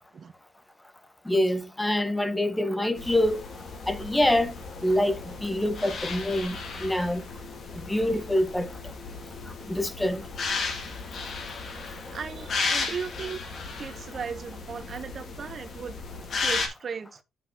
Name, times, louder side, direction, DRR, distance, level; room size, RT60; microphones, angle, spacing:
voice 1, 1.3-3.4 3.9-4.5 4.8-7.2 7.9-8.7 9.7-10.3, left 1 dB, 10° left, 1.1 m, -25 dB
sound 1, 3.0-16.7, left 4 dB, 55° left, 1.9 m, -35 dB
voice 2, 12.1-13.4 13.8-15.9 16.4-17.2, right 6 dB, 45° right, 1.1 m, -36 dB
12.0 x 4.0 x 3.0 m
cardioid pair, 90°, 0 cm